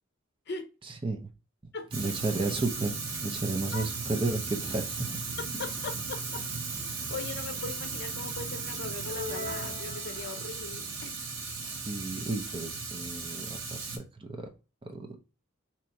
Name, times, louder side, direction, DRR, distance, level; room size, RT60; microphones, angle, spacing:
voice 1, 1.9-3.0 3.2-5.2 11.7-14.5 14.8-15.0, right 3 dB, 25° right, 5 dB, 0.6 m, -33 dB
Fire, 1.9-14.0, right 4 dB, 70° right, 1.0 m, -36 dB
voice 2, 5.4-6.4 6.9-11.2, left 4 dB, 55° left, 6 dB, 0.7 m, -40 dB
Computer Chimes - Logged In, 9.0-10.7, left 3 dB, 45° right, 1.1 m, -40 dB
2.9 x 2.7 x 4.4 m, 0.32 s
head